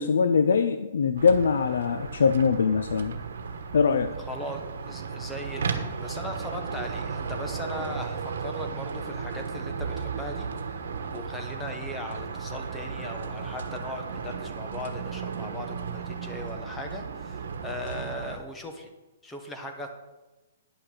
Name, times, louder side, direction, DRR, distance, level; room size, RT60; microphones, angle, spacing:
voice 1, 0.0-3.2 3.7-4.1, left 5 dB, 75° left, 8 dB, 0.6 m, -22 dB
sound 1, 1.2-18.4, right 5 dB, 75° right, 1.3 m, -35 dB
voice 2, 4.3-4.6 4.9-10.5 11.1-18.9 19.2-19.9, left 1 dB, 5° left, 3 dB, 1.0 m, -38 dB
9.8 x 5.8 x 6.8 m, 1.1 s
hypercardioid pair, 170°, 0 cm